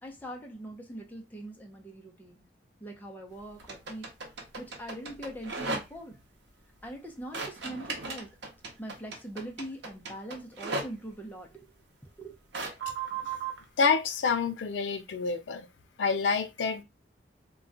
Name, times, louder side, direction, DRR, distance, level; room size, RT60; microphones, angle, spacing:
voice 1, 0.0-2.5 2.8-4.1 4.6-6.2 6.8-8.3 8.8-11.6 12.2-12.4, right 1 dB, 10° left, 0.6 m, -42 dB
sound 1, 3.6-6.2 7.3-10.9 12.5-13.6, right 4 dB, 70° right, 0.7 m, -36 dB
voice 2, 13.8-15.7 16.0-16.8, left 5 dB, 80° left, 0.5 m, -27 dB
2.3 x 2.2 x 3.8 m
head